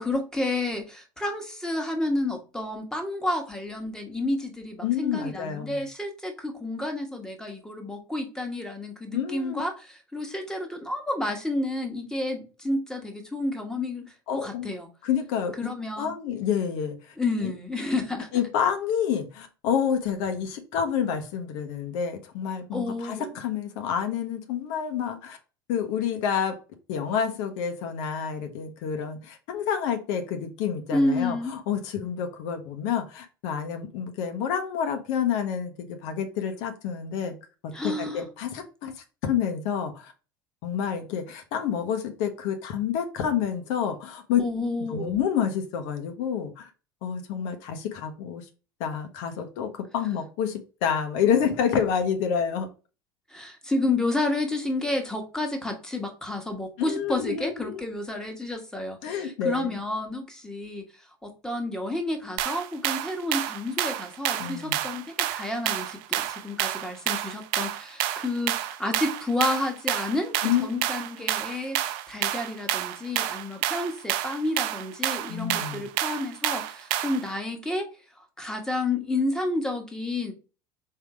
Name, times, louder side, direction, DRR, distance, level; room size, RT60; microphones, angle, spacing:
voice 1, 0.0-9.7 10.1-14.9 15.6-16.1 17.2-18.3 22.7-23.3 30.9-31.5 37.7-38.2 44.4-45.1 53.3-60.9 61.2-71.8 72.1-77.9 78.4-80.3, left 2 dB, 5° left, 1.3 m, -30 dB
voice 2, 4.8-5.8 9.1-9.6 14.3-14.7 15.0-15.7 16.0-17.5 18.3-25.4 25.7-26.6 26.9-37.4 37.6-40.1 40.6-44.4 44.9-46.7 47.0-48.4 48.8-52.7 56.8-57.8 59.0-59.8 64.4-64.8 70.4-70.7 75.3-75.8, left 8 dB, 65° left, 0.9 m, -28 dB
sound 1, 62.4-77.3, right 13 dB, 60° right, 0.5 m, -29 dB
3.7 x 2.7 x 4.8 m
hypercardioid pair, 80°, 12 cm